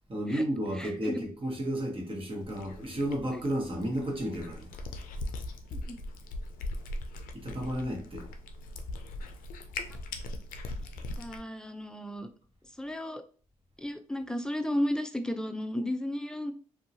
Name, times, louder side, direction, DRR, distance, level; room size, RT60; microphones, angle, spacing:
voice 1, 0.1-4.7 7.3-8.3, equal, 40° right, 1.2 m, -32 dB
voice 2, 0.8-1.3 3.5-3.6 5.9-6.0 11.2-12.3 12.8-13.2 13.8-16.5, left 1 dB, 5° left, 0.5 m, -33 dB
Cat, 2.4-11.4, left 2 dB, 90° left, 0.4 m, -40 dB
2.8 x 2.3 x 2.6 m
supercardioid pair, 50°, 14 cm